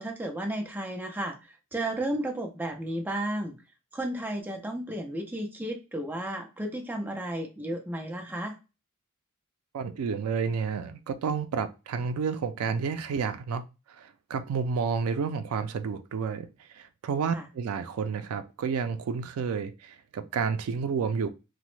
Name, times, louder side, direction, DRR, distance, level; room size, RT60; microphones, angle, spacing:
voice 1, 0.0-3.6 3.9-8.6 17.3-17.4, right 1 dB, 10° right, 0.5 m, -33 dB
voice 2, 9.7-21.3, right 5 dB, 85° right, 0.3 m, -30 dB
2.9 x 2.1 x 3.0 m
head